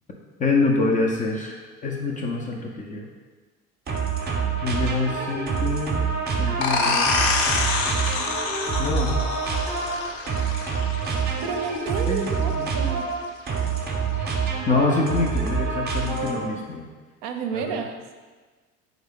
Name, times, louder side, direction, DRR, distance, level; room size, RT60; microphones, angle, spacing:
voice 1, 0.4-1.6 1.8-3.1 4.6-7.1 8.8-9.2 12.1-12.7 14.3-14.4 14.7-16.9 17.5-17.8, left 3 dB, 20° left, 0 dB, 0.4 m, -26 dB
sound 1, 3.9-16.6, right 5 dB, 25° right, 0.7 m, -27 dB
sound 2, 6.6-12.0, left 3 dB, 50° left, 0.7 m, -26 dB
voice 2, 11.4-13.1 17.2-18.2, right 5 dB, 55° right, 5 dB, 0.6 m, -31 dB
3.7 x 3.5 x 3.5 m, 1.4 s
hypercardioid pair, 70°, 43 cm